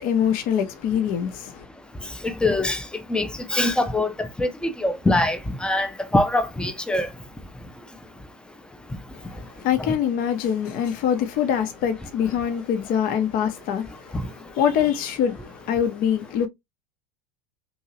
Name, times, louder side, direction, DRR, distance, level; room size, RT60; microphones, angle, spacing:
voice 1, 0.0-1.7 9.1-14.2 14.5-16.5, left 8 dB, 45° left, 0.6 m, -24 dB
voice 2, 2.2-2.8 3.1-4.5 4.8-7.1 9.8-9.9 14.1-14.2, left 2 dB, 5° left, 0.5 m, -23 dB
2.8 x 2.7 x 2.6 m
hypercardioid pair, 85°, 21 cm